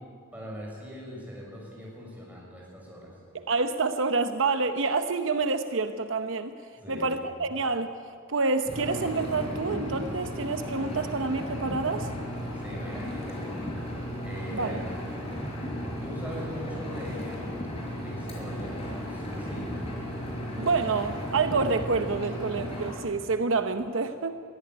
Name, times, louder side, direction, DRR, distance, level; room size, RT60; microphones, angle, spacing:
voice 1, 0.3-3.2 6.7-7.1 7.4-7.5 12.5-13.9 14.2-14.9 16.0-17.5 18.0-19.9, equal, 10° right, -3 dB, 6.5 m, -41 dB
voice 2, 3.3-6.5 6.9-7.9 8.3-12.1 14.5-14.8 20.6-24.4, right 4 dB, 70° right, 9 dB, 0.8 m, -28 dB
Engine, 8.7-22.9, equal, 30° left, 5.4 m, -35 dB
22.5 x 14.5 x 9.6 m, 2.2 s
head